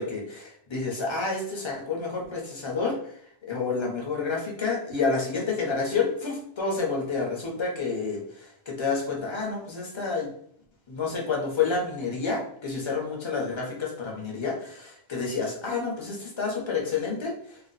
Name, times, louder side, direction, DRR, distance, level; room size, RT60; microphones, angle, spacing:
voice 1, 0.0-10.3 10.9-17.6, left 4 dB, 30° left, -2 dB, 0.7 m, -29 dB
2.5 x 2.2 x 3.9 m, 0.64 s
omnidirectional pair, 1.2 m